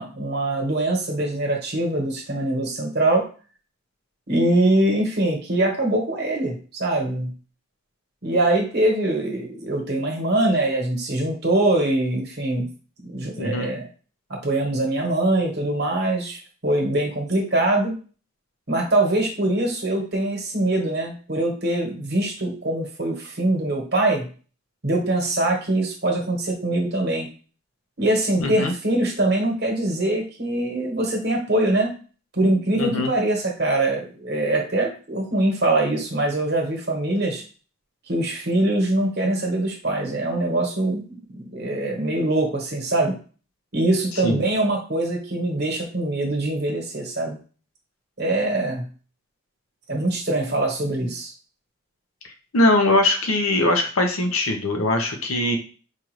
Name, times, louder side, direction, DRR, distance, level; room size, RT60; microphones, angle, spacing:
voice 1, 0.0-3.3 4.3-7.3 8.2-12.7 13.0-13.9 14.3-17.9 18.7-24.3 24.8-27.3 28.0-31.9 32.3-37.4 38.1-43.1 43.7-47.4 48.2-48.8 49.9-51.3, right 1 dB, 50° right, 0 dB, 1.2 m, -23 dB
voice 2, 13.4-13.7 28.4-28.7 32.8-33.1 44.2-44.4 52.5-55.6, left 1 dB, 85° left, 4 dB, 0.9 m, -21 dB
4.6 x 2.5 x 3.1 m, 0.37 s
head